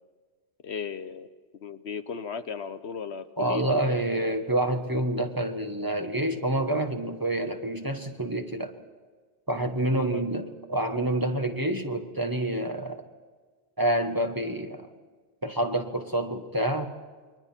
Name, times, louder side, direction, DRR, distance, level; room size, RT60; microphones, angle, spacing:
voice 1, 0.6-1.3 1.6-3.8 10.1-10.2, left 6 dB, 75° left, 10 dB, 1.3 m, -36 dB
voice 2, 3.4-8.7 9.5-13.0 13.8-14.9 15.4-16.9, right 1 dB, 20° right, 5 dB, 1.5 m, -28 dB
30.0 x 23.0 x 4.5 m, 1.4 s
omnidirectional pair, 1.1 m